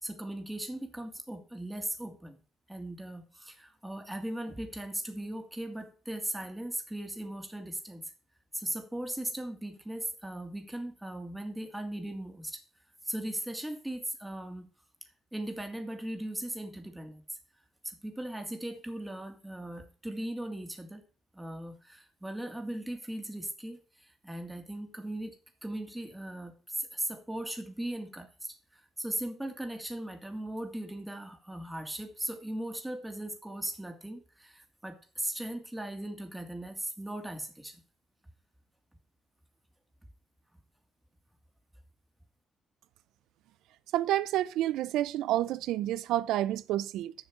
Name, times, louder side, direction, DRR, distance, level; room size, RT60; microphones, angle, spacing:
voice 1, 0.0-2.4 2.7-8.1 8.5-12.6 13.0-14.7 15.3-17.2 17.8-21.1 21.3-25.3 25.6-37.8, right 1 dB, 10° right, 2.0 m, -38 dB
voice 2, 43.9-47.1, right 13 dB, 90° right, 0.4 m, -29 dB
7.2 x 6.3 x 7.4 m
cardioid pair, 90°, 0 cm